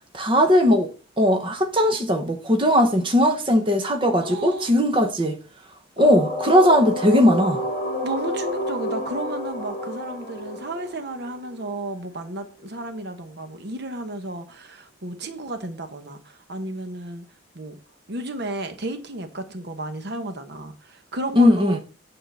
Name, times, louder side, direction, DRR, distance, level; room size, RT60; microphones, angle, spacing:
voice 1, 0.1-0.9 1.2-5.4 6.0-7.6 21.4-21.8, equal, 25° right, 1.0 m, -18 dB
voice 2, 4.2-4.7 5.0-5.1 8.0-17.2 17.5-17.8 18.1-21.8, right 2 dB, 55° right, 1.0 m, -33 dB
sound 1, 6.0-11.7, left 1 dB, 40° left, 2.8 m, -30 dB
9.0 x 3.8 x 6.7 m
head